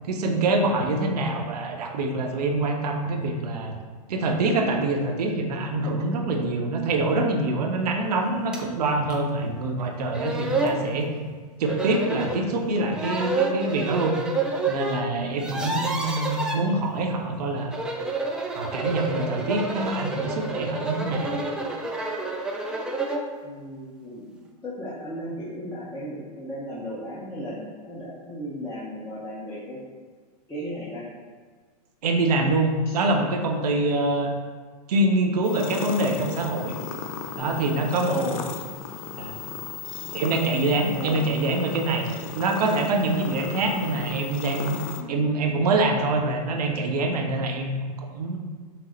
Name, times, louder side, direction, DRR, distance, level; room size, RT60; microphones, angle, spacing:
voice 1, 0.0-3.8 4.1-11.1 11.6-14.2 14.7-17.9 18.5-21.4 32.0-34.3 34.9-36.7 37.4-38.4 39.2-39.3 40.1-42.1 42.3-44.8 45.1-48.4, right 2 dB, 80° right, 3 dB, 0.7 m, -25 dB
sound 1, 8.5-8.6 9.1-9.2 9.8-9.9 10.1-10.8 11.7-12.4 12.9-15.0 15.3-16.6 17.6-23.3, right 3 dB, 5° right, 0.3 m, -29 dB
voice 2, 15.6-15.9 23.4-24.3 24.6-29.8 30.5-31.1 38.1-38.4 40.9-41.2 45.0-45.2, equal, 15° left, -9 dB, 0.8 m, -35 dB
sound 2, 35.4-45.0, left 6 dB, 60° left, 0.5 m, -36 dB
5.9 x 2.0 x 3.8 m, 1.5 s
hypercardioid pair, 125°, 20 cm